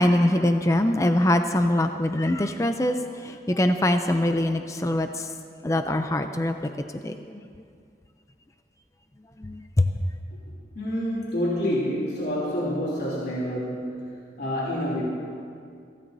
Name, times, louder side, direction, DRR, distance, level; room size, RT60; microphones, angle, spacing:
voice 1, 0.0-3.0 3.2-5.3 5.6-6.5 7.0-7.4 9.4-9.9, left 1 dB, 20° left, 7 dB, 0.5 m, -23 dB
voice 2, 10.7-14.1 14.4-15.0, equal, 75° left, -7 dB, 3.0 m, -28 dB
23.0 x 16.5 x 2.7 m, 2.3 s
head